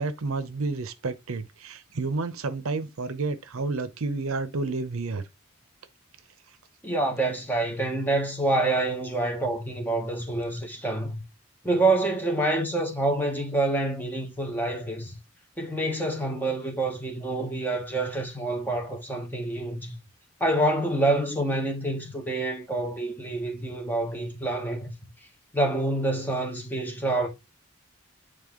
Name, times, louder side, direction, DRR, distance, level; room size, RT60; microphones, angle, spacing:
voice 1, 0.0-5.2, right 3 dB, 70° right, 0.6 m, -30 dB
voice 2, 6.8-11.2 11.6-15.2 15.6-19.9 20.4-24.9 25.5-27.3, right 2 dB, 10° left, 1.2 m, -27 dB
8.6 x 3.3 x 3.6 m
head